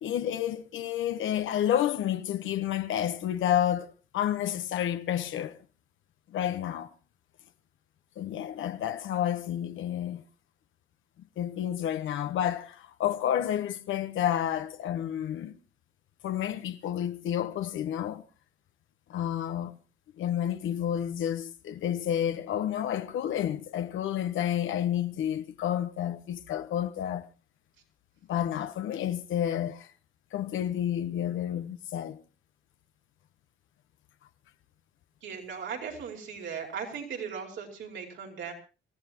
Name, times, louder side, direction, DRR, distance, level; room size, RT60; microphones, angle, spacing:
voice 1, 0.0-5.6 6.3-6.9 8.2-10.2 11.4-15.6 16.2-18.2 19.1-19.8 20.2-27.3 28.3-29.9 30.3-32.2, left 10 dB, 80° left, 1.1 m, -30 dB
voice 2, 35.2-38.5, right 6 dB, 75° right, 5.0 m, -38 dB
26.5 x 15.5 x 3.0 m
cardioid pair, 90°, 20 cm